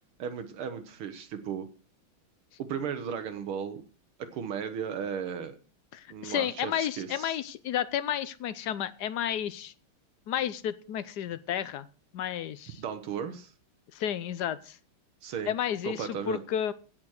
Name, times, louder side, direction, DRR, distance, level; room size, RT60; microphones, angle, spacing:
voice 1, 0.2-1.7 2.6-3.8 4.2-5.6 6.1-7.4 12.8-13.5 15.2-15.5 15.8-16.4, right 7 dB, 80° right, 7 dB, 1.9 m, -35 dB
voice 2, 5.9-9.7 10.3-11.9 12.1-12.8 13.9-14.8 15.5-16.7, left 10 dB, 65° left, 16 dB, 1.1 m, -32 dB
16.5 x 6.0 x 6.4 m, 0.38 s
omnidirectional pair, 2.3 m